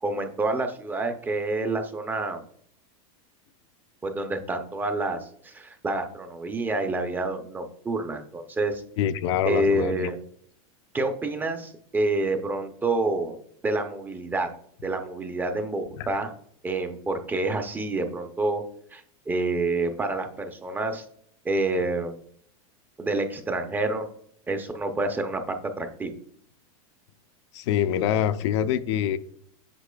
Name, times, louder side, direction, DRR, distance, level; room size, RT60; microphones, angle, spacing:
voice 1, 0.0-2.4 4.0-8.8 9.4-10.2 10.9-13.4 13.6-14.5 14.8-16.3 16.6-18.6 18.9-21.1 21.4-22.2 23.0-24.0 24.5-26.1, right 2 dB, 10° right, 7 dB, 0.5 m, -28 dB
voice 2, 9.0-10.1 16.0-16.1 27.5-29.2, left 10 dB, 55° left, 12 dB, 0.4 m, -25 dB
8.1 x 5.7 x 2.2 m, 0.63 s
supercardioid pair, 155°, 18 cm